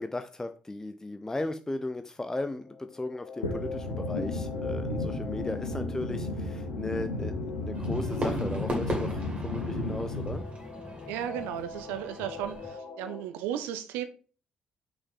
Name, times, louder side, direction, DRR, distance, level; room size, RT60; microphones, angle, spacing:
voice 1, 0.0-10.4, left 2 dB, 15° left, 9 dB, 0.6 m, -36 dB
sound 1, 2.5-13.2, left 5 dB, 55° left, 1.4 m, -43 dB
sound 2, 3.4-10.4, left 1 dB, 80° left, 1.0 m, -33 dB
Fireworks, 7.7-12.7, equal, 35° right, 2.6 m, -37 dB
voice 2, 11.1-14.1, right 10 dB, 65° right, 11 dB, 0.6 m, -35 dB
6.1 x 5.0 x 3.7 m, 0.37 s
figure-of-eight pair, 40°, 4 cm